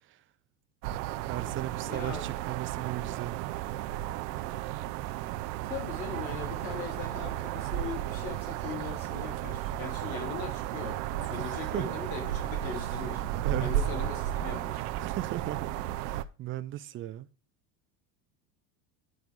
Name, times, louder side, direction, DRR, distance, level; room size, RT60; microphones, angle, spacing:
sound 1, 0.8-16.2, right 13 dB, 70° right, 0.8 m, -34 dB
voice 1, 1.3-3.4 11.3-11.9 13.3-13.7 15.0-15.7 16.0-17.3, right 14 dB, 25° right, 0.4 m, -37 dB
voice 2, 1.9-2.3 5.6-13.2 13.6-14.8, left 7 dB, 85° left, 2.9 m, -40 dB
11.5 x 5.3 x 4.7 m
supercardioid pair, 125°, 50 cm